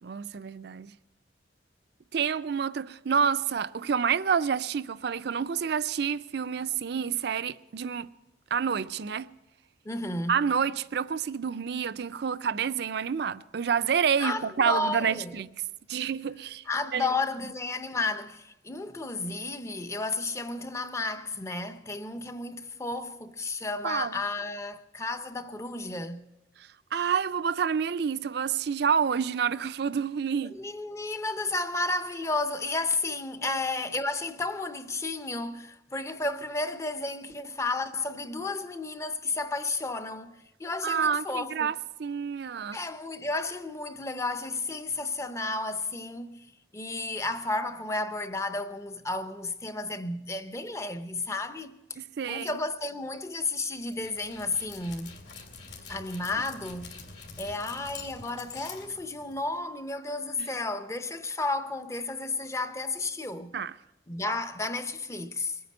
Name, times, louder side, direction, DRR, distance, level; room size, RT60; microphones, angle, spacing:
voice 1, 0.0-0.9 2.1-8.1 8.5-9.3 10.3-15.5 15.9-16.6 16.9-17.1 23.8-24.2 26.6-30.6 33.4-33.6 40.8-41.7 42.0-42.8 52.0-52.6 60.4-60.5 63.5-63.7, right 7 dB, 60° right, 0.4 m, -28 dB
voice 2, 9.8-10.5 14.2-15.4 16.7-26.3 30.5-41.7 42.7-51.8 52.3-55.2 55.9-57.0 57.4-63.6 64.1-65.6, left 2 dB, 15° left, 0.6 m, -32 dB
Dog, 53.8-59.6, left 4 dB, 60° left, 2.4 m, -46 dB
21.5 x 9.4 x 5.3 m
head